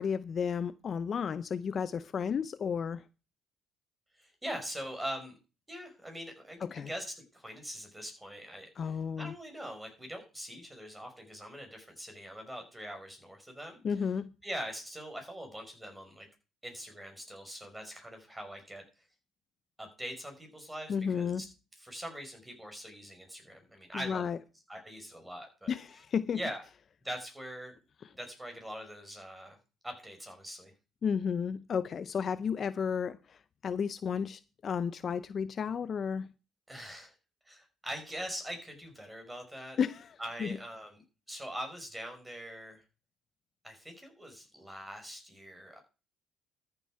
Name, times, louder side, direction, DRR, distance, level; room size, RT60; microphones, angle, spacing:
voice 1, 0.0-3.0 6.6-6.9 8.8-9.3 13.8-14.3 20.9-21.4 23.9-24.4 25.7-26.4 31.0-36.3 39.8-40.1 40.4-40.5, left 7 dB, 40° left, 0.5 m, -33 dB
voice 2, 4.1-5.3 5.7-13.8 14.4-16.3 16.6-18.8 19.8-21.5 21.8-24.2 24.7-25.8 26.3-26.6 27.0-27.7 28.1-29.6 29.8-30.7 36.7-37.1 37.4-39.8 40.2-41.0 41.3-42.8 43.6-45.8, equal, 10° right, 5.2 m, -42 dB
13.5 x 7.6 x 4.7 m
cardioid pair, 110°, 0 cm